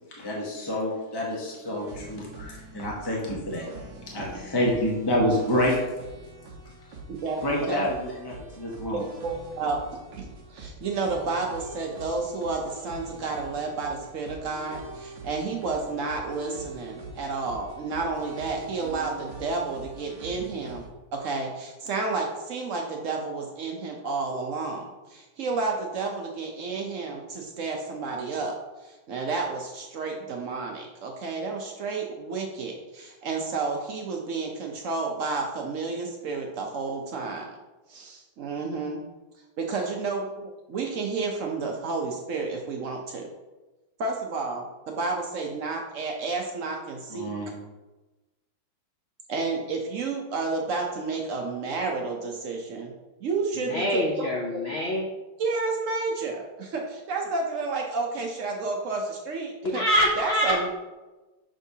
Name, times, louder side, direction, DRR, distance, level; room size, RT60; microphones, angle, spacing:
voice 1, 0.1-3.6 4.1-5.8 7.4-9.1 47.1-47.5, left 1 dB, 25° left, -4 dB, 0.5 m, -28 dB
sound 1, 1.6-20.9, right 2 dB, 60° right, 1.8 m, -43 dB
voice 2, 8.9-9.8 10.1-20.9 21.1-28.6 28.8-37.5 37.9-39.0 39.6-43.3 44.0-47.3 49.3-52.9 53.2-54.3 55.4-59.8 60.2-60.7, right 4 dB, 90° right, 1 dB, 0.6 m, -31 dB
voice 3, 53.6-55.0 59.7-60.7, equal, 80° left, -2 dB, 0.5 m, -25 dB
6.3 x 6.3 x 2.7 m, 1.1 s
omnidirectional pair, 2.2 m